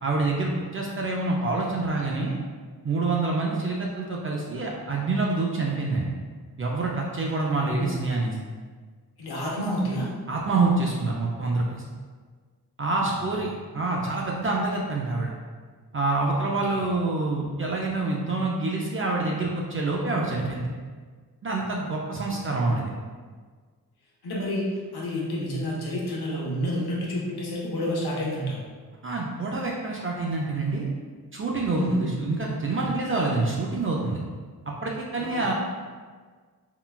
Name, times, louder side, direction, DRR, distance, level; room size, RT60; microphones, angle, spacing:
voice 1, 0.0-2.4 2.8-6.1 6.6-8.3 10.3-11.8 12.8-13.5 13.7-15.3 15.9-20.7 21.4-22.9 29.0-30.9 31.3-34.2 34.7-35.5, right 3 dB, 35° right, -2 dB, 0.4 m, -26 dB
voice 2, 7.5-8.1 9.2-10.1 13.0-13.5 16.4-16.9 22.3-23.0 24.2-28.6 31.7-32.1 35.2-35.4, equal, 80° left, -4 dB, 0.8 m, -30 dB
3.7 x 2.2 x 2.3 m, 1.5 s
wide cardioid pair, 105°, 38 cm